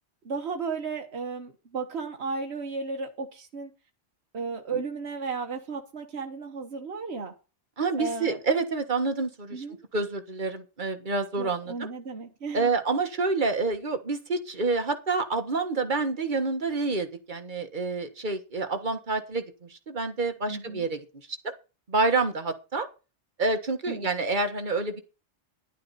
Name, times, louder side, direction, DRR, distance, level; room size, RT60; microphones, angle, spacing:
voice 1, 0.2-3.7 4.3-7.3 8.0-8.4 9.5-9.8 11.4-12.7 20.5-20.9 23.9-24.1, right 4 dB, 65° right, 1.6 m, -34 dB
voice 2, 7.8-9.6 9.9-11.9 12.5-21.0 21.4-21.5 21.9-22.9 23.4-25.0, right 3 dB, 45° right, 1.7 m, -28 dB
11.5 x 11.5 x 4.2 m
omnidirectional pair, 1.1 m